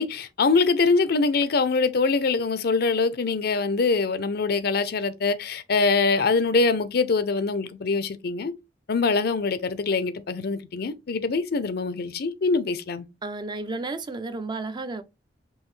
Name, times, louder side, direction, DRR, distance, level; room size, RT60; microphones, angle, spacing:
voice 1, 0.0-8.5 8.9-13.1, left 4 dB, 60° left, 0.5 m, -23 dB
voice 2, 13.2-15.0, right 3 dB, 25° right, 0.4 m, -32 dB
5.5 x 2.7 x 3.1 m
head